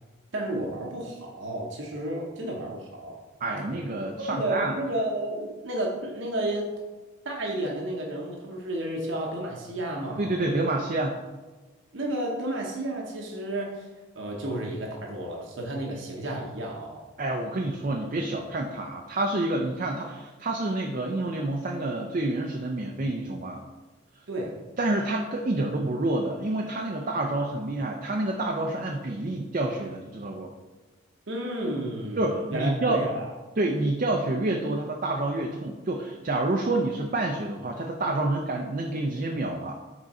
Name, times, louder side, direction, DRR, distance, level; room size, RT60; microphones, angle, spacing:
voice 1, 0.3-3.2 4.2-6.7 7.2-10.4 11.9-13.9 14.1-17.0 24.3-24.6 31.3-33.3, right 1 dB, 70° right, -1 dB, 0.9 m, -32 dB
voice 2, 3.4-4.8 10.2-11.2 17.2-23.6 24.8-30.5 32.2-33.0 33.6-39.8, right 2 dB, 40° right, 1 dB, 0.5 m, -28 dB
6.2 x 3.9 x 4.2 m, 1.3 s
head